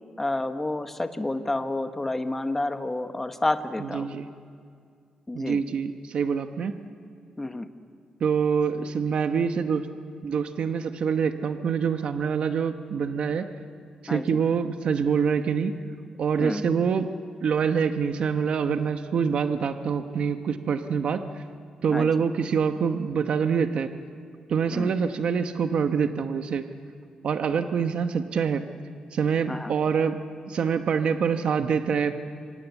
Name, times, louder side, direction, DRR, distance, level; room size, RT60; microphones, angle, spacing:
voice 1, 0.2-4.1 5.3-5.6 7.4-7.7 14.1-14.4 16.4-16.7 21.9-22.1 24.7-24.9 29.5-29.7, left 2 dB, 10° left, 8 dB, 1.0 m, -29 dB
voice 2, 3.8-4.3 5.3-6.7 8.2-9.9 10.2-13.5 14.0-15.7 16.2-17.1 17.4-21.2 21.8-23.9 24.5-26.7 27.2-28.6 29.1-32.2, right 6 dB, 55° right, 7 dB, 1.0 m, -25 dB
26.5 x 24.0 x 8.1 m, 2.2 s
wide cardioid pair, 180°, 2 cm